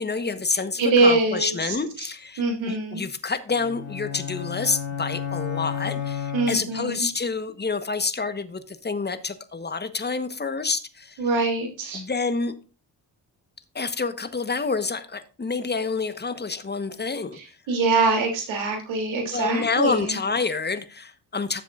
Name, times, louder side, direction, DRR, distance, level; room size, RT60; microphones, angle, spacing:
voice 1, 0.0-11.2 11.9-12.5 13.7-17.4 19.3-21.6, left 4 dB, 20° left, 1.2 m, -28 dB
voice 2, 0.8-1.8 2.4-3.0 6.3-7.1 11.2-12.0 17.3-20.2, right 3 dB, 70° right, 3.1 m, -23 dB
sound 1, 3.5-7.0, left 8 dB, 65° left, 4.0 m, -32 dB
13.0 x 7.4 x 2.5 m
hypercardioid pair, 40°, 48 cm